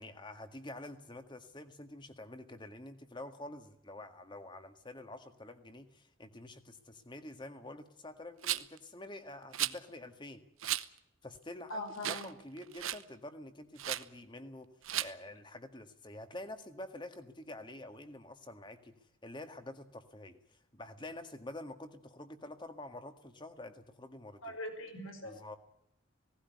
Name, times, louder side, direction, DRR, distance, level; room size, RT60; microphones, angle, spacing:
voice 1, 0.0-10.4 11.2-14.7 15.0-18.9 19.2-24.6 25.2-25.6, left 1 dB, 25° left, 8 dB, 1.8 m, -47 dB
Rattle, 8.4-8.8 9.5-9.8 10.6-10.9 11.3-11.4 12.0-12.3 12.6-13.0 13.8-14.0 14.8-15.1, right 13 dB, 90° right, 0.9 m, -35 dB
voice 2, 11.7-12.3 24.4-25.4, left 1 dB, 90° left, 5 dB, 5.7 m, -41 dB
17.5 x 16.5 x 9.4 m, 0.79 s
head